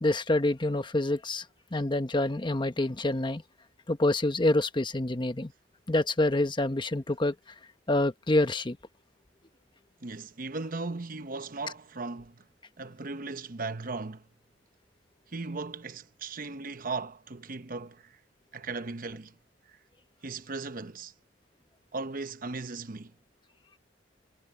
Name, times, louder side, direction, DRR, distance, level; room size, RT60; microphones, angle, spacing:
voice 1, 0.0-1.4 1.7-3.4 3.9-5.5 5.9-7.3 7.9-8.8, left 2 dB, 25° left, 1.0 m, -26 dB
voice 2, 10.0-12.4 12.8-14.2 15.3-18.0 18.5-19.3 20.2-21.1 21.9-23.1, right 3 dB, 45° right, 0.9 m, -37 dB
head